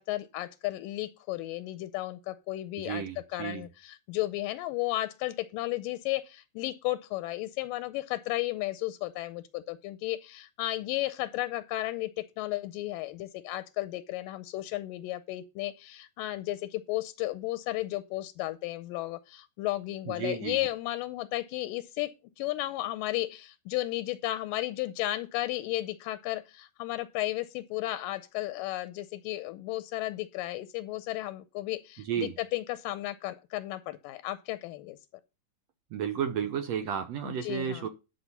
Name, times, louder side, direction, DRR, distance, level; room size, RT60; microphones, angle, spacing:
voice 1, 0.0-3.0 3.3-12.1 12.4-35.0 37.2-37.9, left 16 dB, 85° left, 2.3 m, -34 dB
voice 2, 2.8-3.7 20.1-20.6 32.1-32.3 35.9-37.9, right 8 dB, 70° right, 1.7 m, -32 dB
12.0 x 5.5 x 5.5 m
omnidirectional pair, 3.8 m